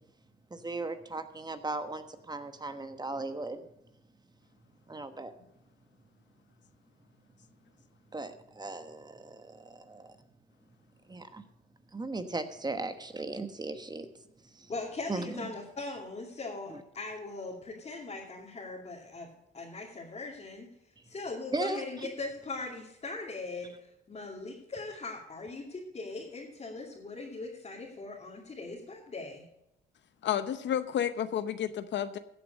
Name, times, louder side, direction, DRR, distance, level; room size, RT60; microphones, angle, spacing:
voice 1, 0.5-3.7 4.9-5.3 8.1-10.2 11.1-11.4 11.9-14.1 14.5-14.7 15.1-15.5 16.7-16.8 21.5-21.8, right 2 dB, 20° right, 9 dB, 1.2 m, -37 dB
voice 2, 14.7-19.3 19.5-20.7 21.0-29.4, left 3 dB, 35° left, -4 dB, 2.7 m, -40 dB
voice 3, 30.2-32.2, left 9 dB, 65° left, 12 dB, 0.8 m, -31 dB
15.0 x 7.5 x 5.3 m, 0.86 s
cardioid pair, 90°, 20 cm